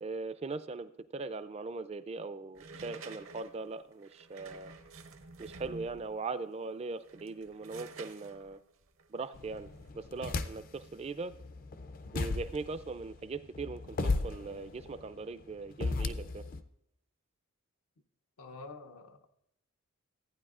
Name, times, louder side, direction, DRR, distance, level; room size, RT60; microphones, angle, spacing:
voice 1, 0.0-4.7 5.4-8.6 9.1-9.7 9.9-11.3 12.1-16.4, right 3 dB, 30° right, 0.3 m, -40 dB
sound 1, 2.5-6.2 6.9-9.9, right 3 dB, 65° right, 0.7 m, -50 dB
sound 2, 9.3-10.9 11.3-16.6, left 3 dB, 40° left, 0.4 m, -36 dB
voice 2, 18.4-19.4, left 3 dB, 85° left, 0.7 m, -48 dB
14.5 x 9.3 x 2.4 m
head